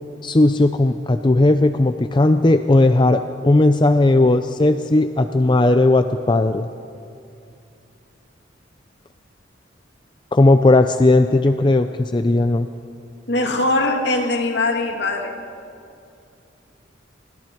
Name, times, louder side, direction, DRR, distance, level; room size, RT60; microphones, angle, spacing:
voice 1, 0.2-6.7 10.3-12.7, left 2 dB, 25° left, 9 dB, 0.5 m, -16 dB
voice 2, 13.3-15.4, left 2 dB, 60° left, 3 dB, 2.3 m, -21 dB
28.5 x 21.5 x 4.5 m, 2.6 s
head